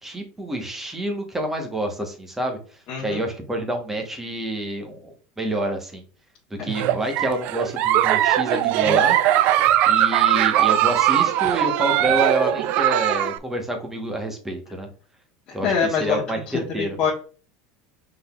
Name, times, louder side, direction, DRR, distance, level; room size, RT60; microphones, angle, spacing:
voice 1, 0.0-2.6 3.0-6.0 6.6-9.2 9.9-14.9 15.5-16.4 16.7-17.0, right 1 dB, 10° right, 3 dB, 1.2 m, -28 dB
voice 2, 2.9-3.2 6.6-6.7 15.5-17.1, left 6 dB, 35° left, -4 dB, 1.5 m, -25 dB
Giggle, 6.7-13.4, right 12 dB, 50° right, 0.4 m, -20 dB
5.1 x 4.0 x 2.4 m, 0.39 s
supercardioid pair, 140°, 3 cm